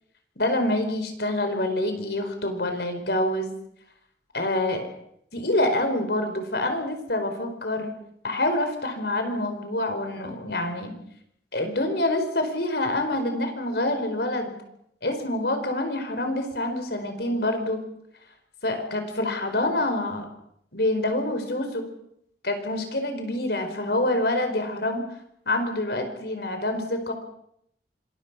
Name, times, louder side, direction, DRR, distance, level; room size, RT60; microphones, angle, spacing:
voice 1, 0.4-3.5 4.3-4.9 5.3-7.9 8.2-10.9 11.5-14.5 15.0-17.8 18.6-20.3 20.7-21.9 22.4-25.0 25.5-27.1, left 1 dB, 65° left, 7 dB, 4.6 m, -26 dB
26.0 x 21.5 x 6.1 m, 0.73 s
head